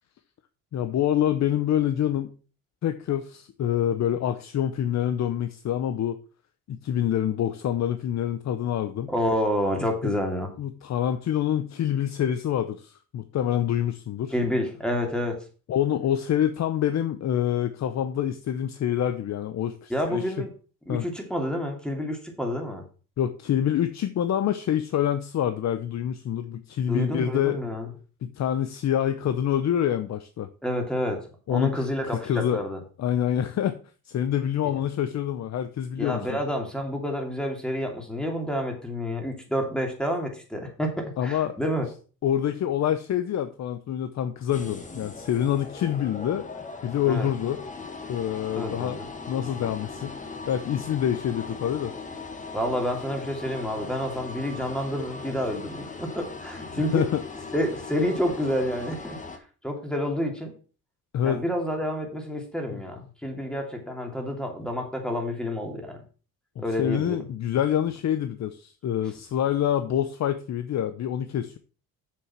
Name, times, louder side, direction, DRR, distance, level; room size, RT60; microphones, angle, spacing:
voice 1, 0.7-2.3 2.8-6.2 6.7-9.1 10.0-10.1 10.6-14.3 15.7-20.2 20.9-21.1 23.2-27.6 28.2-30.5 31.5-32.6 33.0-33.8 34.0-36.4 41.2-41.5 42.2-46.5 46.8-47.6 48.1-49.0 49.3-51.9 56.7-57.2 61.1-61.4 66.6-71.6, left 10 dB, 55° left, 10 dB, 0.8 m, -26 dB
voice 2, 9.1-10.5 14.3-15.4 19.9-20.5 20.9-22.8 26.9-27.9 30.6-32.8 34.6-34.8 36.0-41.9 47.1-47.3 48.6-49.1 52.5-57.1 57.5-59.2 59.6-60.5 61.2-66.0 66.6-67.2, equal, ahead, 2 dB, 2.8 m, -29 dB
sound 1, 44.5-59.4, left 4 dB, 20° left, 1.6 m, -39 dB
7.7 x 6.9 x 5.9 m, 0.38 s
cardioid pair, 120°, 33 cm